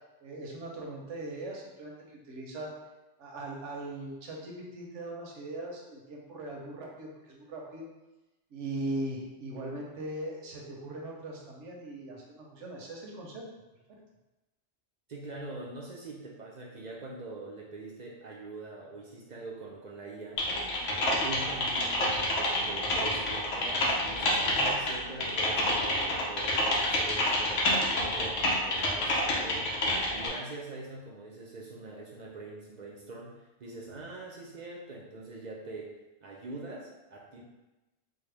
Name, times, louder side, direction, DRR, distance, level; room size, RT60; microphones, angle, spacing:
voice 1, 0.2-2.7 3.2-7.9 8.5-13.4, right 1 dB, 80° right, -2 dB, 1.1 m, -39 dB
voice 2, 15.1-20.5 21.2-29.7 30.1-35.9 36.2-37.4, right 2 dB, 55° right, -3 dB, 0.5 m, -43 dB
Typing, 20.4-30.3, left 1 dB, 90° left, 1.1 m, -28 dB
4.4 x 2.1 x 3.3 m, 1.0 s
omnidirectional pair, 1.2 m